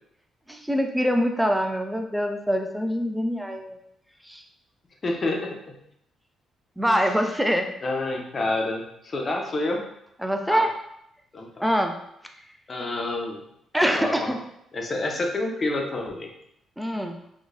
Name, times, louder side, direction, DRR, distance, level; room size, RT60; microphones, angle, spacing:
voice 1, 0.5-3.8 4.2-4.4 6.8-7.7 8.1-8.2 10.2-10.7 11.6-12.0 13.7-14.4 16.8-17.2, equal, 5° right, 4 dB, 0.4 m, -24 dB
voice 2, 5.0-5.8 6.9-7.0 7.8-9.8 10.5-10.7 11.3-11.5 12.7-13.4 13.9-14.3 14.7-16.3, left 2 dB, 35° left, 2 dB, 0.6 m, -28 dB
3.9 x 2.3 x 2.5 m, 0.76 s
cardioid pair, 90°, 0 cm